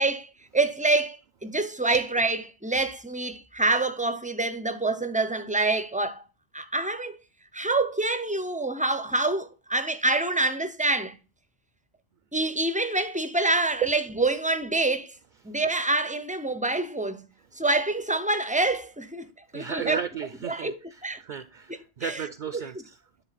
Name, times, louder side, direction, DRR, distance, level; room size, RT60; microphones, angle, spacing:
voice 1, 0.0-6.2 6.5-7.2 7.5-11.2 12.3-15.1 15.4-17.3 17.6-20.0 20.4-20.8 21.0-21.2 21.7-22.2, right 2 dB, 10° right, 0.5 m, -26 dB
voice 2, 19.5-23.0, right 8 dB, 60° right, 0.7 m, -34 dB
10.0 x 3.8 x 4.0 m
omnidirectional pair, 1.0 m